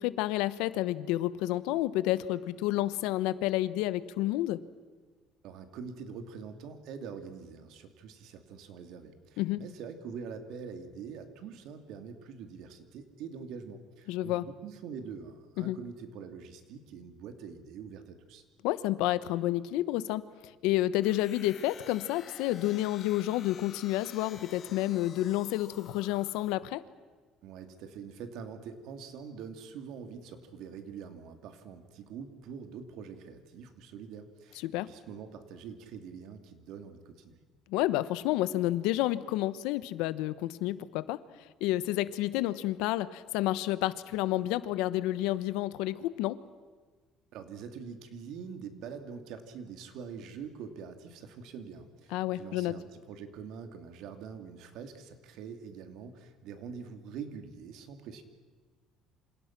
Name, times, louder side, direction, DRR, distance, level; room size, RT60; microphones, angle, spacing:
voice 1, 0.0-4.6 9.4-9.6 14.1-14.5 15.6-15.8 18.6-26.8 34.6-34.9 37.7-41.2 41.6-46.4 52.1-52.7, left 15 dB, 90° left, 15 dB, 1.1 m, -30 dB
voice 2, 5.4-18.4 27.4-37.4 47.3-58.2, right 6 dB, 55° right, 7 dB, 2.8 m, -44 dB
sound 1, 21.0-26.5, left 8 dB, 35° left, 1.5 m, -51 dB
28.0 x 27.0 x 6.1 m, 1.4 s
cardioid pair, 180°, 0 cm